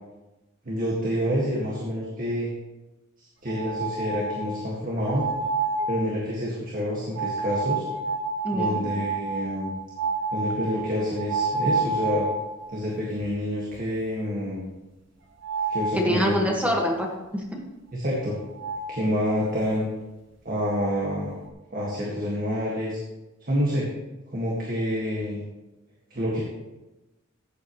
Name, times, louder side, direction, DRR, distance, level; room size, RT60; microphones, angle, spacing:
voice 1, 0.7-2.5 3.4-5.3 5.9-7.9 8.5-9.7 10.3-12.3 12.7-14.7 15.7-16.4 17.9-18.4 18.9-19.9 20.5-21.4 21.7-23.0 23.4-23.9 24.3-25.4 26.1-26.4, equal, 40° right, -4 dB, 1.9 m, -28 dB
sound 1, 3.5-4.6 5.0-6.0 7.2-12.8 13.2-13.3 13.7-13.8 15.4-16.0 18.2-18.3 18.6-19.0, right 4 dB, 60° right, 1.6 m, -29 dB
voice 2, 8.4-8.8 15.9-17.6, equal, 5° right, 0 dB, 1.7 m, -25 dB
15.0 x 8.2 x 3.1 m, 1.0 s
head